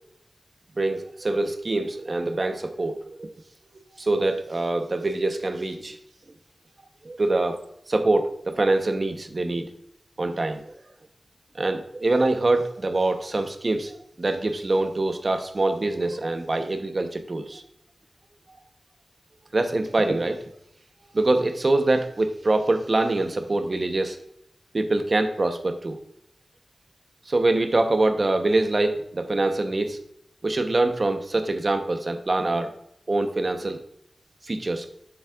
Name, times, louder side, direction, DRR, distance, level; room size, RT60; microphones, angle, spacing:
voice 1, 0.8-3.3 4.0-6.0 7.0-7.6 7.9-9.7 10.2-10.7 11.6-17.6 19.5-20.4 21.1-24.2 24.7-26.0 27.3-30.0 30.4-32.7 33.1-33.8 34.5-34.9, right 2 dB, 45° right, 7 dB, 0.9 m, -24 dB
10.5 x 7.1 x 2.5 m, 0.75 s
wide cardioid pair, 70°, 0 cm